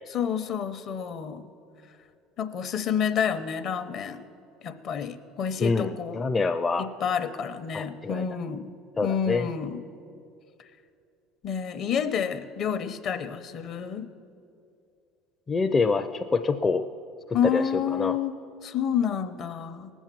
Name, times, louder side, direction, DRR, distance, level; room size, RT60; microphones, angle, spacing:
voice 1, 0.1-1.4 2.4-4.2 4.6-6.2 6.8-8.7 9.0-9.8 11.4-14.1 17.3-18.3 18.6-19.9, left 8 dB, 55° left, 10 dB, 0.8 m, -29 dB
voice 2, 5.6-6.9 7.7-8.3 9.0-9.5 15.5-16.9 17.3-18.2, left 4 dB, 25° left, 6 dB, 0.5 m, -26 dB
18.5 x 7.2 x 7.5 m, 2.5 s
supercardioid pair, 90°, 0 cm